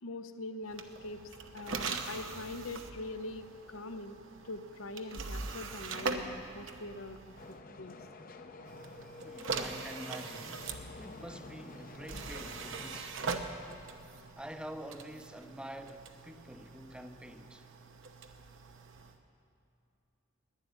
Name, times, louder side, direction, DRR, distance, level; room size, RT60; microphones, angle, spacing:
voice 1, 0.0-4.2 4.4-7.3 7.8-8.0, left 2 dB, 75° left, 0.8 m, -43 dB
sound 1, 0.7-7.6 8.6-19.2, right 4 dB, 65° right, 0.9 m, -42 dB
sound 2, 7.4-13.0, left 3 dB, 45° left, 0.6 m, -50 dB
voice 2, 9.2-13.4 14.4-17.7, right 1 dB, 5° right, 0.6 m, -47 dB
11.5 x 10.5 x 9.3 m
head